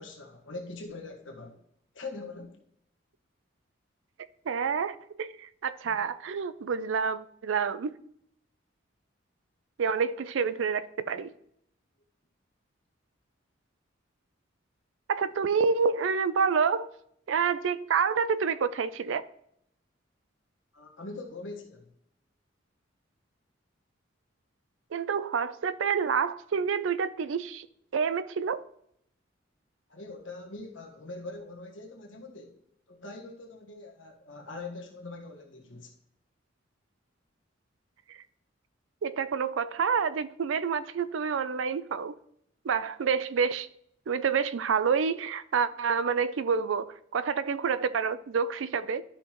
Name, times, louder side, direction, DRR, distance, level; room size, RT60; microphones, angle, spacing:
voice 1, 0.0-1.6 1.9-2.6 5.8-6.0 20.7-21.9 29.9-32.6 32.9-35.9, left 3 dB, 75° left, 1.4 m, -42 dB
voice 2, 4.5-7.9 9.8-11.3 15.1-16.9 17.3-19.2 24.9-27.7 27.9-28.6 38.1-38.2 39.0-42.2 42.6-43.7 44.1-49.0, right 6 dB, 75° right, 0.4 m, -28 dB
11.5 x 5.8 x 3.0 m
head